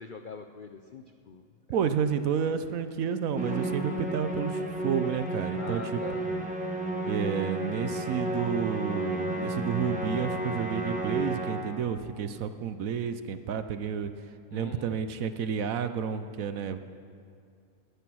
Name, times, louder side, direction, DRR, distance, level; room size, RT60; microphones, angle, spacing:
voice 1, 0.0-1.9 5.5-6.3 14.5-15.0, left 4 dB, 65° left, 6 dB, 0.5 m, -43 dB
voice 2, 1.7-6.0 6.3-6.4 7.0-14.1 14.5-16.8, right 7 dB, 65° right, 10 dB, 1.0 m, -30 dB
Musical instrument, 3.4-11.9, right 1 dB, 5° right, 1.2 m, -32 dB
19.0 x 10.0 x 6.2 m, 2.3 s
omnidirectional pair, 1.7 m